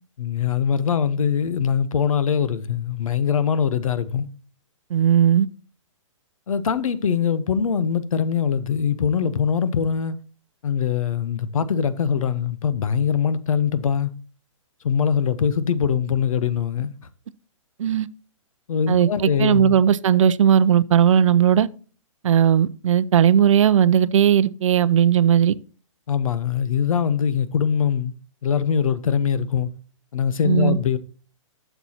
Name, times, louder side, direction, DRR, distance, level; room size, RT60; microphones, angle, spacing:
voice 1, 0.2-4.3 6.5-10.1 10.6-14.1 14.8-16.9 18.7-19.7 26.1-28.1 28.4-29.7 30.1-31.0, left 7 dB, 80° left, 0.9 m, -22 dB
voice 2, 4.9-5.5 17.8-18.1 18.9-19.1 19.4-21.7 22.2-25.5 30.4-30.8, right 9 dB, 65° right, 0.5 m, -17 dB
12.5 x 6.9 x 2.9 m
hypercardioid pair, 160°, 17 cm